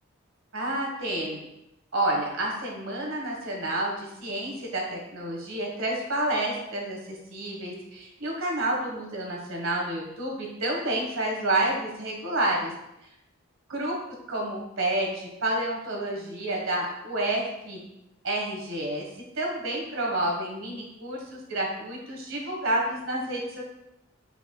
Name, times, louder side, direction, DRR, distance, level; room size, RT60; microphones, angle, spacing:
voice 1, 0.5-1.4 1.9-12.7 13.7-14.0 14.3-17.8 18.2-19.1 19.4-23.6, right 1 dB, 75° right, -1 dB, 1.6 m, -29 dB
9.1 x 5.6 x 2.4 m, 0.89 s
head